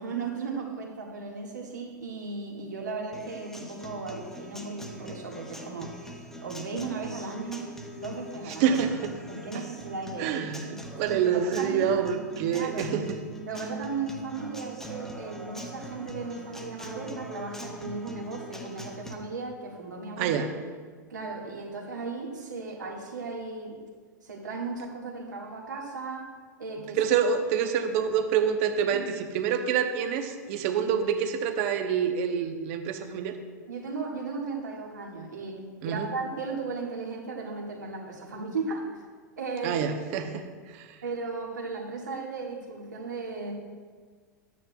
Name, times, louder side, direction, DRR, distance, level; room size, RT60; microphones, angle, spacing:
voice 1, 0.0-7.7 8.0-8.8 9.3-10.3 10.6-10.8 11.1-11.9 12.5-12.8 13.4-20.4 21.1-23.8 24.2-26.3 26.6-27.0 28.9-29.1 33.7-38.9 39.4-39.8 41.0-43.5, right 4 dB, 75° right, -1 dB, 1.8 m, -36 dB
Acoustic guitar, 3.1-19.1, right 1 dB, 5° left, 1.2 m, -42 dB
voice 2, 8.6-9.1 9.5-9.6 10.2-13.2 20.2-20.5 27.0-33.4 35.8-36.1 39.6-40.5 40.7-41.0, right 7 dB, 50° right, 7 dB, 0.9 m, -27 dB
13.5 x 9.4 x 2.3 m, 1.6 s
figure-of-eight pair, 90°, 10 cm